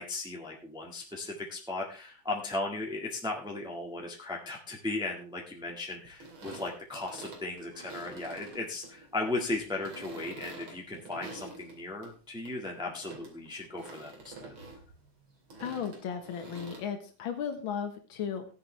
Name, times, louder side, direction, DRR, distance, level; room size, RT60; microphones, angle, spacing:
voice 1, 0.0-14.5, left 2 dB, ahead, 0 dB, 1.6 m, -36 dB
sound 1, 6.0-12.1 12.4-16.8, right 2 dB, 90° right, 3.6 m, -48 dB
voice 2, 15.6-18.5, left 7 dB, 90° left, 6 dB, 2.0 m, -35 dB
15.0 x 10.0 x 3.3 m, 0.36 s
omnidirectional pair, 2.2 m